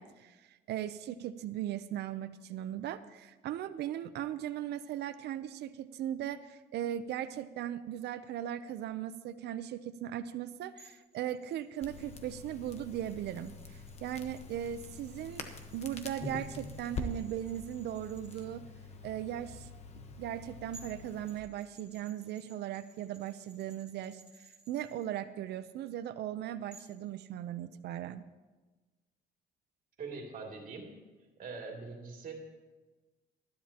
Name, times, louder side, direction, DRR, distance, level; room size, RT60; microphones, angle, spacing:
voice 1, 0.0-18.6 19.0-19.7 20.2-28.2, right 11 dB, 75° right, 12 dB, 0.6 m, -38 dB
sound 1, 10.8-18.5 20.4-20.5 20.7-25.1 26.7-27.0, right 3 dB, 5° right, 2.4 m, -60 dB
Crackle, 11.8-21.4, left 3 dB, 40° left, 1.1 m, -45 dB
voice 2, 30.0-30.9 31.4-32.3, right 4 dB, 55° right, 0 dB, 2.7 m, -43 dB
19.5 x 13.0 x 2.9 m, 1.2 s
cardioid pair, 160°, 17 cm